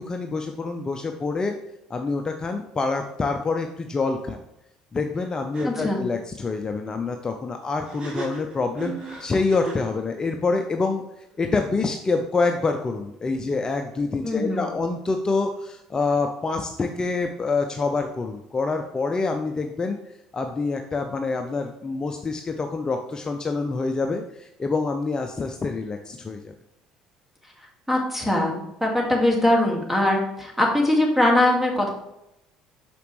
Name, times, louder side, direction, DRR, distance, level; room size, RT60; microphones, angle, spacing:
voice 1, 0.1-1.6 1.9-4.4 4.9-8.9 9.2-11.0 11.4-20.0 20.3-26.5, left 3 dB, 30° left, 5 dB, 0.6 m, -26 dB
sound 1, 5.1-5.3 5.5-5.7 7.8-10.0, right 3 dB, 45° right, 1.8 m, -35 dB
voice 2, 5.6-6.0 14.2-14.7 27.9-31.9, left 1 dB, 10° right, 0 dB, 1.9 m, -21 dB
5.9 x 5.0 x 3.2 m, 0.84 s
hypercardioid pair, 65°, 2 cm